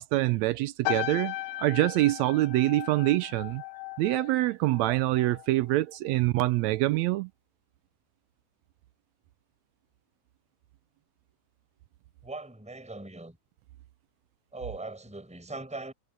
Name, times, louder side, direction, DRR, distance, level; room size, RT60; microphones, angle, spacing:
voice 1, 0.0-3.6 4.0-7.3, right 17 dB, 90° right, 1.6 m, -25 dB
sound 1, 0.8-5.5 5.7-6.1, left 17 dB, 85° left, 1.6 m, -37 dB
voice 2, 12.2-13.4 14.5-15.9, right 2 dB, ahead, 4.6 m, -40 dB
omnidirectional pair, 3.7 m